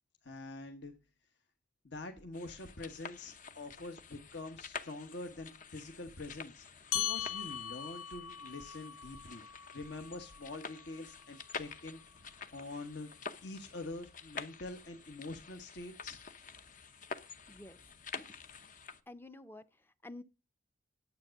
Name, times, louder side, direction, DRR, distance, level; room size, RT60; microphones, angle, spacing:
voice 1, 0.2-0.9 1.8-6.6 6.9-9.4 9.7-13.1 13.4-16.2, left 2 dB, 60° left, 1.2 m, -45 dB
sound 1, 2.3-19.0, left 5 dB, 40° left, 0.8 m, -49 dB
sound 2, 6.9-11.7, left 11 dB, 80° left, 1.0 m, -41 dB
voice 2, 17.5-17.8 18.2-18.4 19.1-20.2, left 2 dB, 10° left, 0.6 m, -50 dB
9.5 x 8.0 x 6.4 m
head